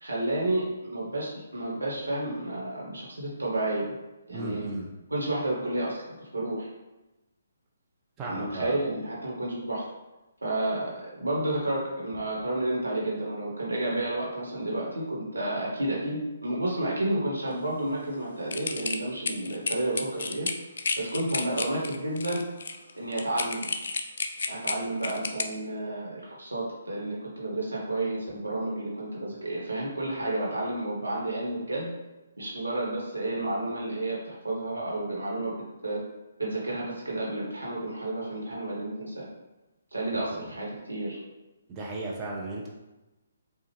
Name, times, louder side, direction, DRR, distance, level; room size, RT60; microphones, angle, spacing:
voice 1, 0.0-3.9 4.3-4.7 5.1-6.7 8.2-9.8 10.4-20.5 21.0-22.4 23.0-23.7 24.5-31.9 32.4-35.5 35.8-36.0 36.4-39.2 39.9-41.2, right 1 dB, 80° right, -4 dB, 1.5 m, -31 dB
voice 2, 4.3-4.9 8.2-8.8 40.3-40.5 41.7-42.7, right 2 dB, 20° right, -4 dB, 0.7 m, -35 dB
sound 1, 18.5-25.4, left 4 dB, 55° left, 0.4 m, -32 dB
4.9 x 2.4 x 3.2 m, 1.0 s
figure-of-eight pair, 135°, 0 cm